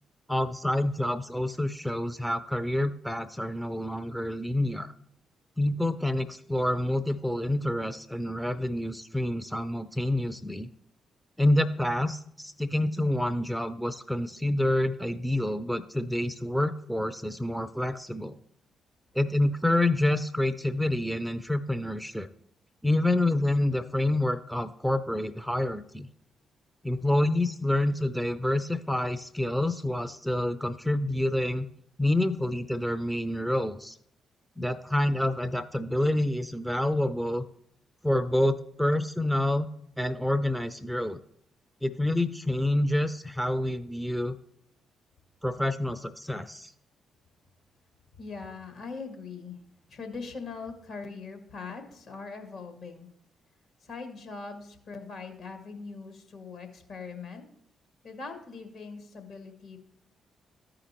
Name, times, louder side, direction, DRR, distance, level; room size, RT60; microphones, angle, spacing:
voice 1, 0.3-4.9 5.6-10.7 11.4-18.4 19.1-22.3 22.8-26.1 26.8-31.7 32.0-34.0 34.6-37.5 38.0-39.7 40.0-41.2 41.8-44.4 45.4-46.7, left 1 dB, ahead, 12 dB, 0.5 m, -27 dB
voice 2, 48.2-49.6 49.9-53.1 53.8-57.5 58.0-59.8, left 4 dB, 65° left, 5 dB, 1.7 m, -41 dB
13.5 x 5.0 x 3.0 m, 0.71 s
hypercardioid pair, 40°, 0 cm